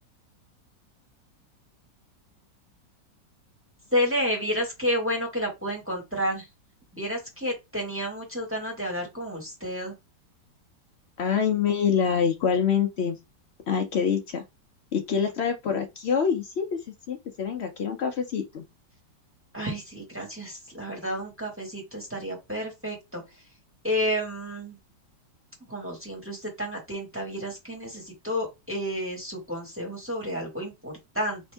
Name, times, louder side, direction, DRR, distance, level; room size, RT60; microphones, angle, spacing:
voice 1, 3.9-6.5 6.9-9.9 19.5-23.2 23.8-24.8 25.7-31.4, equal, 10° right, 1.3 m, -30 dB
voice 2, 11.2-13.2 13.7-14.4 14.9-16.8 17.1-18.6, left 7 dB, 90° left, 0.5 m, -25 dB
5.2 x 2.6 x 3.4 m
omnidirectional pair, 1.9 m